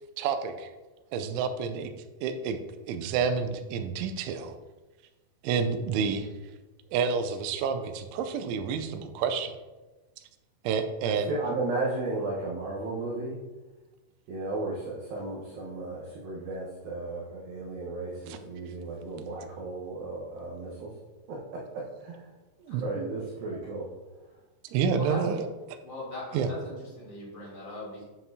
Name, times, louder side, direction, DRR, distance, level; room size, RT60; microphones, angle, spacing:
voice 1, 0.2-0.7 1.1-1.9 2.2-2.6 2.9-4.6 5.4-6.3 6.9-9.5 10.6-11.3 18.3-18.4 22.7-23.1 23.5-23.6 24.7-25.8 26.3-26.5, right 6 dB, 85° right, 8 dB, 3.0 m, -29 dB
voice 2, 11.0-13.4 14.3-20.9 22.0-22.3 22.8-23.9, right 2 dB, 65° right, -5 dB, 2.5 m, -34 dB
voice 3, 25.8-28.0, left 1 dB, 25° left, -6 dB, 2.7 m, -39 dB
9.7 x 7.3 x 2.8 m, 1.2 s
omnidirectional pair, 5.3 m